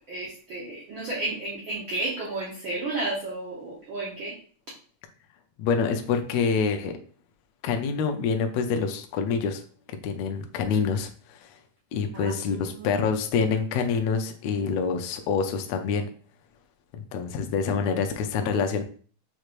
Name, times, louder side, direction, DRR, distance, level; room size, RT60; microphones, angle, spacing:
voice 1, 0.1-4.3 12.1-13.0, right 2 dB, 90° right, -5 dB, 1.1 m, -32 dB
voice 2, 5.6-6.9 7.6-9.6 10.0-11.5 11.9-16.1 16.9-18.8, left 5 dB, 80° left, 6 dB, 1.6 m, -26 dB
6.5 x 2.5 x 3.0 m, 0.43 s
omnidirectional pair, 3.7 m